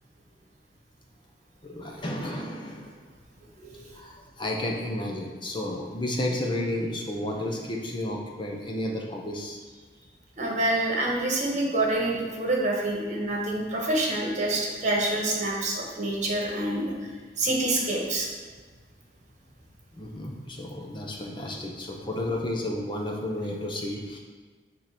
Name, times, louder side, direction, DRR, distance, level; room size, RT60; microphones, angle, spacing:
voice 1, 1.6-3.0 3.9-9.6 19.9-24.2, left 1 dB, 30° left, 0 dB, 0.9 m, -32 dB
voice 2, 10.4-16.9 17.4-18.3, right 2 dB, 45° right, -2 dB, 1.7 m, -27 dB
9.4 x 3.9 x 5.9 m, 1.4 s
head